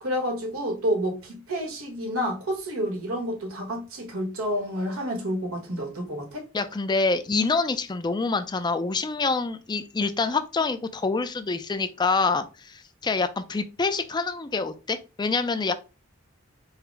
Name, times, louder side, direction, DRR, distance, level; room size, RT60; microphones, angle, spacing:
voice 1, 0.0-6.5, equal, 85° right, 1.3 m, -29 dB
voice 2, 6.5-15.7, left 4 dB, 20° left, 0.4 m, -26 dB
4.8 x 2.0 x 4.6 m
head